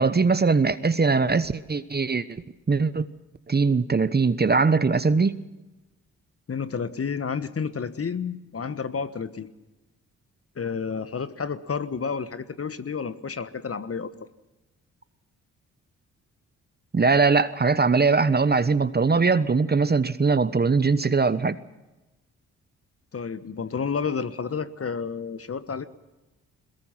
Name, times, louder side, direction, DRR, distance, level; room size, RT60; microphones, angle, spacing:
voice 1, 0.0-2.4 2.7-3.1 3.5-5.4 16.9-21.6, right 4 dB, 25° right, 15 dB, 1.1 m, -21 dB
voice 2, 6.5-9.5 10.6-14.1 23.1-25.9, left 6 dB, 35° left, 13 dB, 1.4 m, -30 dB
22.0 x 21.0 x 5.9 m, 1.1 s
hypercardioid pair, 40°, 38 cm